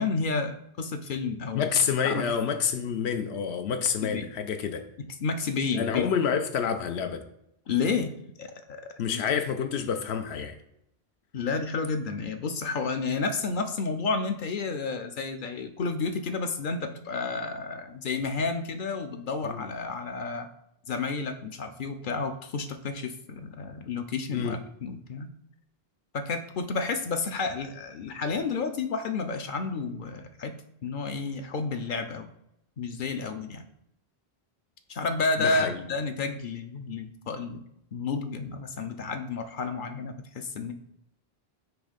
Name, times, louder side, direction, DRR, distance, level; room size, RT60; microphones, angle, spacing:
voice 1, 0.0-1.7 2.0-2.2 4.0-4.3 5.2-6.1 7.7-8.1 8.4-8.8 9.1-9.2 11.3-20.5 20.9-25.3 26.1-30.5 30.8-32.3 32.8-33.6 34.9-37.6 37.9-40.7, left 4 dB, 60° left, 7 dB, 0.7 m, -31 dB
voice 2, 1.5-4.8 5.7-7.2 9.0-10.5 19.4-19.7 24.3-24.6 35.4-35.8, left 7 dB, 90° left, 6 dB, 0.9 m, -28 dB
6.0 x 3.1 x 5.0 m, 0.80 s
omnidirectional pair, 1.1 m